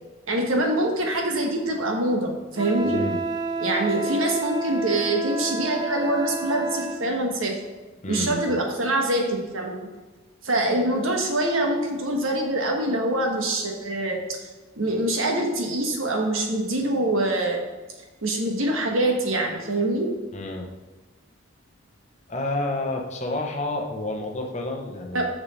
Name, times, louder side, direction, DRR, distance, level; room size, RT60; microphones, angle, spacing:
voice 1, 0.3-3.0 3.6-7.6 8.1-9.9 10.4-14.2 14.8-17.6 18.2-20.1 25.1-25.3, right 1 dB, 85° right, 2 dB, 1.3 m, -24 dB
Wind instrument woodwind instrument, 2.6-7.0, right 3 dB, 20° right, 0.4 m, -30 dB
voice 2, 8.0-8.5 20.3-20.7 22.3-25.3, left 2 dB, 35° left, 1 dB, 0.9 m, -29 dB
6.6 x 6.2 x 4.1 m, 1.2 s
head